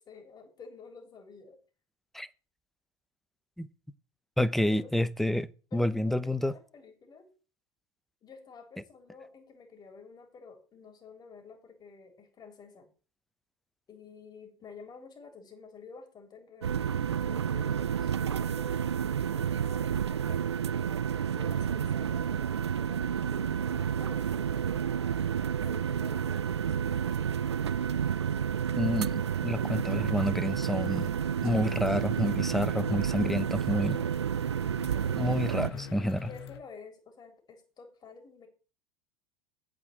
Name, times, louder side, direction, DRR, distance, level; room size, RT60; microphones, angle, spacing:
voice 1, 0.0-1.6 4.6-4.9 5.7-7.3 8.2-12.9 13.9-16.8 17.3-18.7 19.3-20.7 21.3-25.3 25.6-26.9 34.8-35.2 35.5-38.5, left 5 dB, 30° left, 3.7 m, -50 dB
voice 2, 4.4-5.5 5.7-6.5 28.8-31.1 31.4-34.0 35.2-36.3, left 1 dB, ahead, 0.8 m, -29 dB
sound 1, 16.6-35.7, right 8 dB, 90° right, 0.4 m, -30 dB
sound 2, 25.7-36.6, left 8 dB, 70° left, 1.3 m, -50 dB
8.5 x 6.3 x 8.0 m
hypercardioid pair, 85°, 14 cm